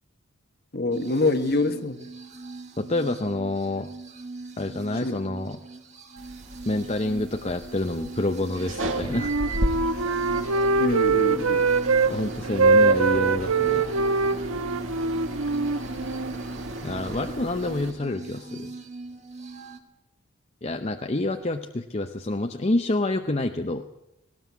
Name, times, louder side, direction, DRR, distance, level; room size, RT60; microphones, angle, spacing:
voice 1, 0.7-2.0 5.0-5.2 10.8-11.6, left 2 dB, 50° left, 8 dB, 1.5 m, -25 dB
sound 1, 0.9-19.8, right 3 dB, 30° right, 1.8 m, -41 dB
voice 2, 2.8-3.9 4.6-5.6 6.6-9.4 10.0-10.2 12.1-13.9 16.8-18.7 20.6-23.8, left 2 dB, 30° left, 5 dB, 0.7 m, -28 dB
sound 2, 6.2-17.9, right 1 dB, 65° right, 2.3 m, -35 dB
Wind instrument woodwind instrument, 8.7-12.1 12.4-16.3, right 4 dB, 85° right, 1.2 m, -23 dB
18.5 x 18.0 x 8.3 m, 0.89 s
head